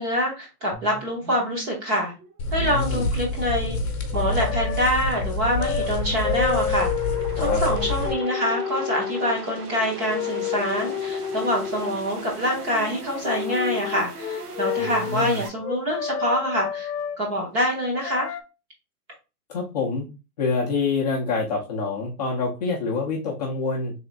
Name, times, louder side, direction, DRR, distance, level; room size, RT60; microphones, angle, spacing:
voice 1, 0.0-2.1 2.5-3.8 4.1-6.9 7.4-16.9 17.2-18.4, equal, 15° right, -2 dB, 0.9 m, -25 dB
sound 1, 0.7-15.5, right 4 dB, 80° right, 1.1 m, -39 dB
sound 2, 2.4-8.1, left 2 dB, 45° left, 1.0 m, -28 dB
voice 2, 2.6-3.1 7.4-7.6 14.8-15.4 19.5-20.1 20.4-23.9, left 4 dB, 25° left, -3 dB, 0.6 m, -26 dB
sound 3, 4.4-4.9 5.6-5.9 6.2-9.4 10.0-12.0 12.7-13.0 13.2-17.2 18.0-18.4, left 9 dB, 75° left, 0.7 m, -29 dB
3.5 x 3.0 x 3.9 m, 0.30 s
hypercardioid pair, 170°, 46 cm